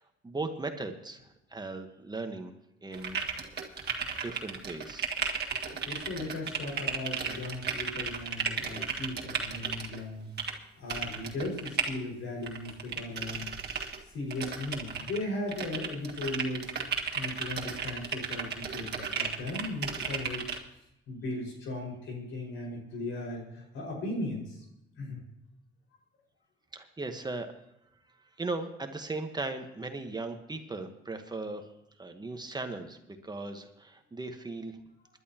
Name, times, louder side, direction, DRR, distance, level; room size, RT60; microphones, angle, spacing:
voice 1, 0.2-2.5 2.8-3.2 4.2-5.1 26.7-27.5 28.2-31.6 32.0-34.8, right 3 dB, 20° right, 6 dB, 1.3 m, -37 dB
sound 1, 2.9-10.0 10.4-10.5 10.9-11.9 12.4-14.0 14.3-15.2 15.5-20.6, right 6 dB, 55° right, 1.7 m, -34 dB
voice 2, 5.6-10.3 10.8-13.5 14.1-16.7 17.1-20.5 21.1-24.6 25.0-25.2, left 2 dB, 80° left, 0 dB, 5.2 m, -37 dB
26.0 x 11.0 x 2.9 m, 0.85 s
cardioid pair, 90°, 20 cm